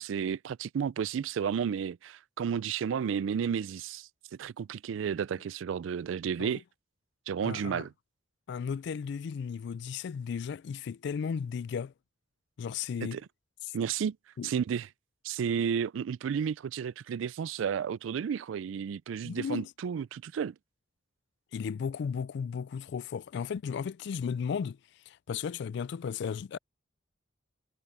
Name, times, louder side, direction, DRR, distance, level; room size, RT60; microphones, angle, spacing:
voice 1, 0.0-4.1 4.4-6.6 7.3-7.9 13.0-13.2 13.7-14.2 14.4-14.9 15.2-20.5, right 7 dB, 85° right, 0.3 m, -32 dB
voice 2, 7.4-7.9 8.5-11.9 12.6-13.2 14.4-14.5 19.2-19.7 21.5-24.8 25.1-26.6, left 6 dB, 65° left, 0.3 m, -35 dB
head